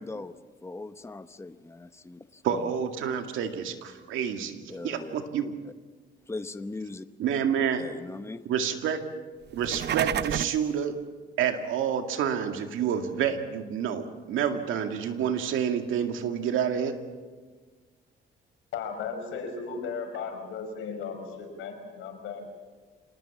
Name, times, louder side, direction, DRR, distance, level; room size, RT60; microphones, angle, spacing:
voice 1, 0.6-2.7 4.7-5.1 5.6-5.7 6.3-7.1 7.8-8.4, left 3 dB, 15° left, 11 dB, 0.9 m, -39 dB
voice 2, 2.4-5.5 7.2-7.8 8.5-9.0 9.5-11.0 11.4-17.0, right 8 dB, 85° right, 6 dB, 2.2 m, -28 dB
sound 1, 9.5-10.7, right 10 dB, 60° right, 0.7 m, -29 dB
voice 3, 18.7-22.5, left 5 dB, 85° left, 4 dB, 5.4 m, -36 dB
26.5 x 19.5 x 7.2 m, 1.4 s
cardioid pair, 90°, 20 cm